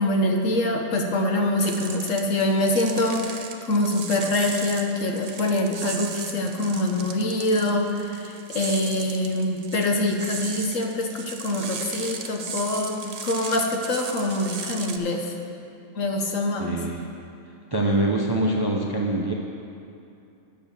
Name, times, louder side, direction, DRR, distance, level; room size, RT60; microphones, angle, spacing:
voice 1, 0.0-15.3 15.9-16.8, left 1 dB, 65° left, 2 dB, 1.3 m, -25 dB
sound 1, 1.6-15.0, right 5 dB, 70° right, 0.3 m, -37 dB
voice 2, 16.6-17.0 17.7-19.3, right 1 dB, 25° right, -1 dB, 0.6 m, -24 dB
10.5 x 6.3 x 7.2 m, 2.7 s
omnidirectional pair, 1.5 m